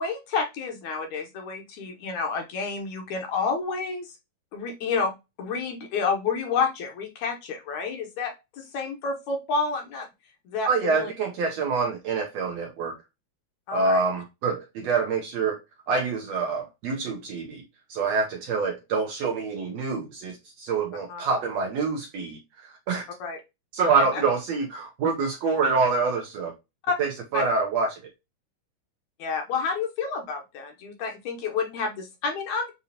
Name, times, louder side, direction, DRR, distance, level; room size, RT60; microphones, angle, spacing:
voice 1, 0.0-4.1 4.5-5.1 5.4-10.1 10.5-11.1 13.7-14.0 21.1-21.2 23.2-23.4 24.1-24.2 26.9-27.0 27.3-27.4 29.2-32.7, left 5 dB, 70° left, 2.1 m, -29 dB
voice 2, 10.7-13.0 13.7-15.6 15.9-17.6 17.9-23.0 23.7-26.5 27.0-28.0, right 4 dB, 70° right, 1.7 m, -26 dB
6.9 x 2.7 x 2.8 m
omnidirectional pair, 3.8 m